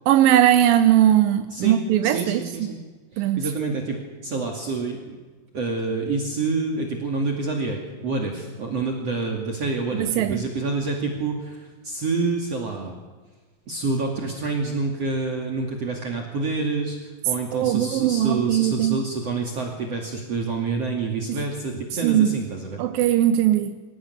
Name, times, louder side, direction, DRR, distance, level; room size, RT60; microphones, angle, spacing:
voice 1, 0.1-2.7 3.2-3.4 9.9-10.4 17.5-19.0 21.3-21.4 22.0-22.4 22.8-23.8, right 12 dB, 85° right, 2.6 m, -20 dB
voice 2, 1.5-2.8 3.1-5.2 5.5-12.9 13.7-22.8, right 3 dB, 50° right, 3.3 m, -28 dB
26.0 x 17.5 x 9.7 m
omnidirectional pair, 4.0 m